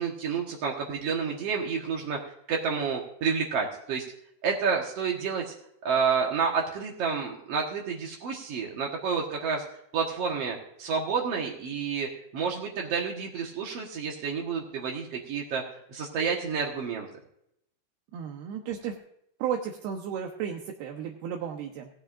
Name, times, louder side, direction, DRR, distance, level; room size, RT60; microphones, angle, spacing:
voice 1, 0.0-2.2 2.5-4.0 4.4-5.5 5.8-9.6 9.9-15.6 15.9-17.1, right 6 dB, 65° right, 0 dB, 1.6 m, -29 dB
voice 2, 18.1-19.0 19.4-21.9, right 8 dB, 80° right, 2 dB, 3.0 m, -33 dB
17.5 x 13.0 x 2.5 m, 0.74 s
omnidirectional pair, 4.7 m